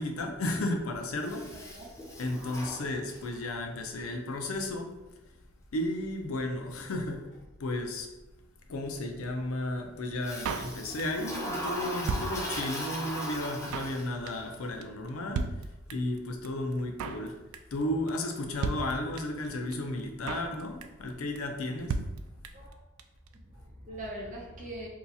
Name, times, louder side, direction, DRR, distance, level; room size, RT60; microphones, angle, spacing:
voice 1, 0.0-1.7 2.2-4.9 5.7-7.3 7.6-8.1 8.7-17.4 17.7-22.0, left 1 dB, 90° left, 3 dB, 0.5 m, -34 dB
Toilet flush, 1.2-3.5 10.2-14.4, equal, 15° left, 0.5 m, -38 dB
voice 2, 1.5-1.9 9.3-9.4 22.5-22.8 23.4-24.9, right 1 dB, 35° right, -2 dB, 0.8 m, -42 dB
Drum kit, 10.4-11.3 11.5-11.6 11.8-12.9 13.2-13.3 13.4-14.0 14.3-14.5 14.8-14.9 15.1-15.2 15.3-16.2 16.4-16.5 16.7-17.3 17.5-17.8 18.1-18.2 18.4-18.5 18.6-19.5 19.7-19.8 20.0-20.5 20.8-21.1 21.3-21.4 21.6-21.7 21.9-22.7 23.0-23.1 23.3-23.4, right 4 dB, 85° right, 0.3 m, -34 dB
2.7 x 2.3 x 4.0 m, 1.0 s
head